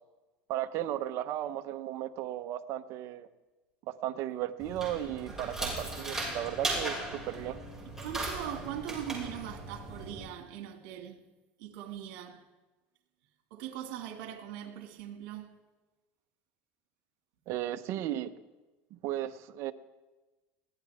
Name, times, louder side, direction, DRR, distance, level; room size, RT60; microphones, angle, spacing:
voice 1, 0.5-3.3 3.9-7.0 7.3-7.6 17.5-18.3 18.9-19.7, right 12 dB, 60° right, 1.0 m, -35 dB
sound 1, 4.6-10.2, right 2 dB, 10° right, 6.0 m, -37 dB
voice 2, 8.0-11.2 11.6-12.4 13.5-15.5, right 11 dB, 75° right, 2.3 m, -40 dB
22.0 x 17.0 x 3.6 m
supercardioid pair, 110°, 5 cm